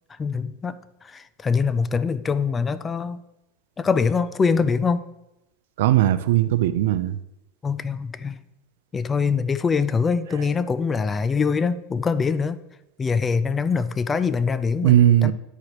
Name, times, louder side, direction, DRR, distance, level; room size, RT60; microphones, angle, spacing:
voice 1, 0.1-0.8 1.0-3.2 3.8-5.0 7.6-8.4 8.9-12.6 13.0-15.3, left 5 dB, 15° left, 14 dB, 0.3 m, -23 dB
voice 2, 5.8-7.2 14.8-15.3, right 14 dB, 80° right, 13 dB, 0.5 m, -18 dB
11.0 x 4.8 x 2.9 m, 0.90 s
supercardioid pair, 145°, 0 cm